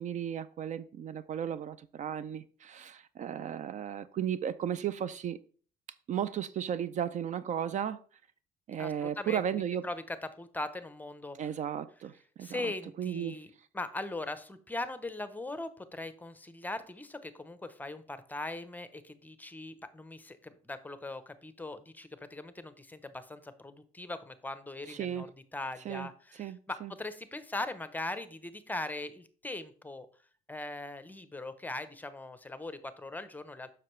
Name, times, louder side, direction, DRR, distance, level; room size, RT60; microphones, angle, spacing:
voice 1, 0.0-5.4 6.1-8.0 8.7-9.8 11.4-12.7 13.0-13.4 24.9-25.3 25.8-26.9, right 9 dB, 45° right, 0.4 m, -35 dB
voice 2, 8.8-11.4 12.4-25.3 25.5-30.1 30.5-33.7, left 2 dB, 10° left, 0.6 m, -40 dB
7.6 x 5.9 x 3.1 m
cardioid pair, 110°, 17 cm